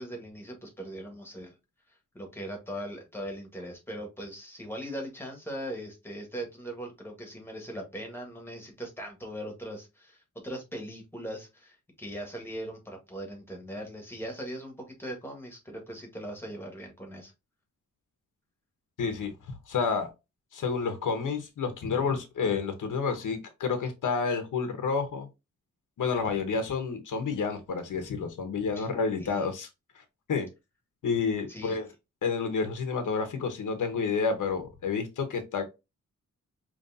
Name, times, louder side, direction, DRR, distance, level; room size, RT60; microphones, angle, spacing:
voice 1, 0.0-1.5 2.1-17.3 28.8-28.9 29.2-29.5 31.5-31.8, equal, 5° left, 1.5 m, -40 dB
voice 2, 19.0-19.3 19.7-20.1 20.5-25.3 26.0-29.7 29.9-30.0 30.3-30.5 31.0-31.9 32.2-35.6, left 5 dB, 80° left, 1.0 m, -29 dB
5.3 x 3.0 x 2.7 m
wide cardioid pair, 170°, 31 cm